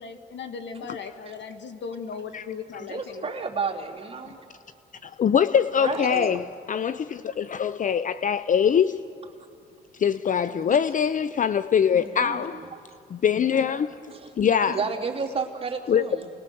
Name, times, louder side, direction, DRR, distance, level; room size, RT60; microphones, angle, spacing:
voice 1, 0.0-3.4 4.2-4.3 13.5-13.9, left 5 dB, 65° left, 1.8 m, -37 dB
voice 2, 2.8-4.4 5.8-6.3 10.5-10.8 11.9-12.8 14.1-14.3 14.7-16.3, right 5 dB, 30° right, 3.1 m, -32 dB
voice 3, 5.0-9.0 10.0-12.6 13.1-13.9 14.4-14.8 15.9-16.0, left 8 dB, 40° left, 0.5 m, -23 dB
29.5 x 20.0 x 7.0 m
cardioid pair, 90°, 20 cm